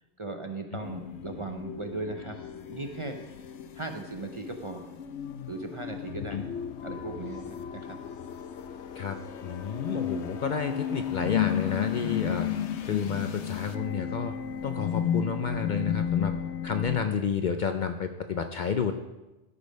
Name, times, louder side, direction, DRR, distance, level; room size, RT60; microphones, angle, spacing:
voice 1, 0.2-2.4 2.7-3.2 3.7-4.9 5.5-6.5 6.8-8.0, right 2 dB, 35° right, 4 dB, 0.6 m, -37 dB
sound 1, 0.8-17.1, left 9 dB, 85° left, 0.9 m, -34 dB
voice 2, 8.9-12.5 12.8-14.3 14.6-16.3 16.6-18.9, left 6 dB, 55° left, 7 dB, 0.6 m, -30 dB
12.5 x 5.2 x 5.3 m, 1.1 s
omnidirectional pair, 1.1 m